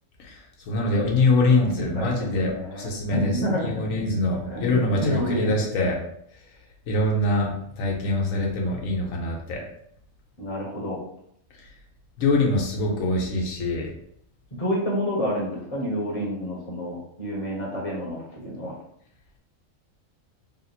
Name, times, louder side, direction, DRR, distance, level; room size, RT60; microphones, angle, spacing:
voice 1, 0.7-6.0 6.9-7.5 7.8-9.6 12.2-13.9, left 2 dB, 90° left, -1 dB, 1.3 m, -24 dB
voice 2, 1.6-3.9 4.4-5.7 10.4-11.0 14.6-18.8, equal, 30° left, -4 dB, 1.2 m, -29 dB
3.5 x 2.6 x 4.1 m, 0.71 s
omnidirectional pair, 1.3 m